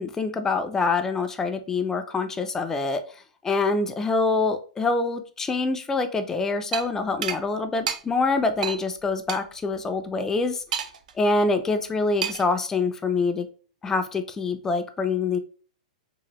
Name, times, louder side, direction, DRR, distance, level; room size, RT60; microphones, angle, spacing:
voice 1, 0.0-3.0 3.4-10.6 11.2-13.5 13.8-15.4, left 3 dB, 10° left, 7 dB, 0.3 m, -25 dB
sound 1, 6.7-6.9 7.2-7.4 7.9-8.0 8.6-8.8 9.3-9.4 10.7-11.1 12.2-12.5, right 8 dB, 80° right, 0.4 m, -28 dB
2.9 x 2.5 x 2.9 m, 0.41 s
hypercardioid pair, 140°, 4 cm